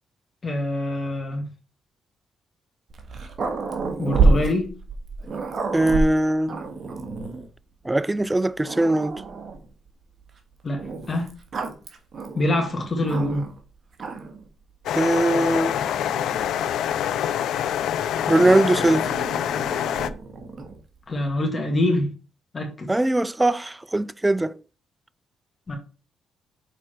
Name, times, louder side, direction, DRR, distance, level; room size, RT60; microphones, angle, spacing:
voice 1, 0.4-1.5 4.0-4.7 10.6-11.4 12.3-13.4 21.1-22.1 22.5-22.9 25.7-25.8, left 1 dB, 35° left, 2.0 m, -25 dB
Growling, 2.9-7.5 8.2-8.3 8.6-9.7 10.8-13.6 13.9-14.5 15.3-17.2 18.3-20.8, right 3 dB, 50° right, 1.6 m, -29 dB
voice 2, 5.7-6.6 7.9-9.2 15.0-15.7 18.3-19.1 22.9-24.5, right 1 dB, 15° right, 0.3 m, -21 dB
sound 1, 14.9-20.1, left 10 dB, 75° left, 0.5 m, -25 dB
6.7 x 4.3 x 4.5 m
cardioid pair, 90°, 0 cm